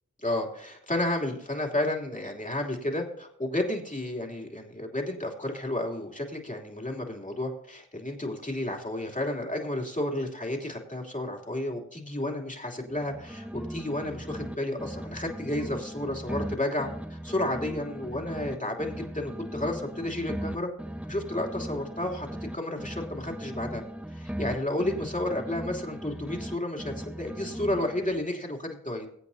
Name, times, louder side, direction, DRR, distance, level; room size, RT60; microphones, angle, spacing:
voice 1, 0.2-20.7 21.1-22.3 22.5-23.8 24.1-29.1, left 1 dB, 25° left, 1 dB, 3.1 m, -32 dB
sound 1, 12.9-14.5 14.8-18.5 18.8-22.5 22.8-26.5 26.8-28.2, equal, 5° right, 1.1 m, -38 dB
22.0 x 8.5 x 2.8 m, 0.72 s
wide cardioid pair, 40°, 30 cm